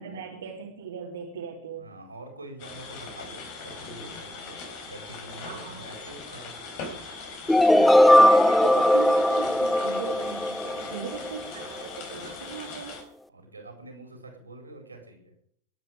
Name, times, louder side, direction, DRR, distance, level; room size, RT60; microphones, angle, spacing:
voice 1, 0.0-1.8 5.4-5.9 7.7-13.0, right 7 dB, 65° right, -3 dB, 2.9 m, -38 dB
voice 2, 1.7-6.6 13.3-15.3, right 2 dB, 80° right, 3 dB, 4.4 m, -45 dB
sound 1, 2.6-13.0, left 4 dB, 45° left, 4.0 m, -40 dB
sound 2, 7.5-11.4, left 1 dB, 5° left, 0.6 m, -19 dB
21.0 x 9.1 x 4.9 m, 0.65 s
figure-of-eight pair, 90°, 0 cm